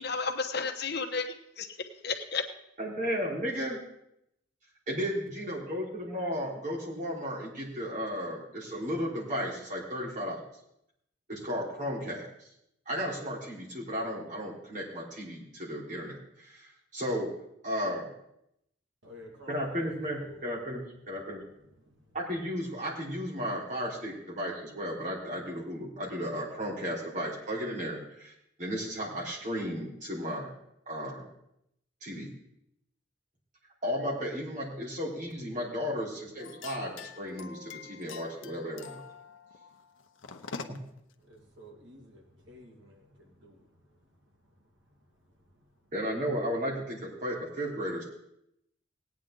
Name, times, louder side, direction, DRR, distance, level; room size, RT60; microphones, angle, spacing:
voice 1, 0.0-2.4, left 4 dB, 55° left, 6 dB, 1.0 m, -33 dB
voice 2, 2.8-3.8 4.9-10.4 11.3-12.5 12.9-17.3 17.6-18.1 19.5-21.4 22.1-28.3 28.6-30.5 30.9-31.3 32.0-32.3 33.8-39.0 45.9-48.0, equal, 40° right, -4 dB, 3.6 m, -34 dB
voice 3, 19.0-19.9 20.2-20.5 21.6-22.2 41.2-44.1 44.5-44.6 44.9-45.0 45.6-45.7, equal, 75° right, 1 dB, 2.1 m, -53 dB
sound 1, 36.4-41.0, left 5 dB, 85° left, 0.8 m, -45 dB
18.0 x 9.3 x 3.8 m, 0.78 s
head